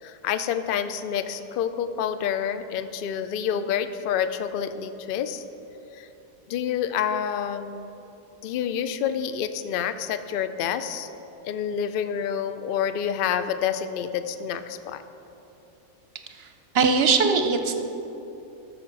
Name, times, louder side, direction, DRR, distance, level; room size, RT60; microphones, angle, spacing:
voice 1, 0.0-5.4 5.9-6.1 6.5-7.9 8.4-11.1 11.4-15.0, left 8 dB, 70° left, 11 dB, 0.5 m, -28 dB
voice 2, 16.7-17.8, right 5 dB, 55° right, 7 dB, 0.8 m, -21 dB
14.0 x 6.6 x 6.0 m, 2.9 s
omnidirectional pair, 1.5 m